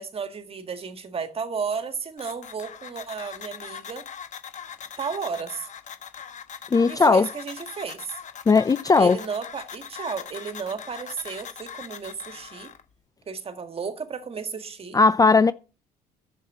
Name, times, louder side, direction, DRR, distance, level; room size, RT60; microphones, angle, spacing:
voice 1, 0.0-4.1 5.0-5.7 6.9-8.1 9.0-12.7 13.3-15.0, right 5 dB, 35° right, 1.8 m, -33 dB
sound 1, 2.2-12.8, left 7 dB, 45° left, 1.3 m, -41 dB
voice 2, 6.7-7.3 8.5-9.2 14.9-15.5, left 4 dB, 20° left, 0.5 m, -17 dB
10.5 x 7.5 x 7.4 m
cardioid pair, 110°, 17 cm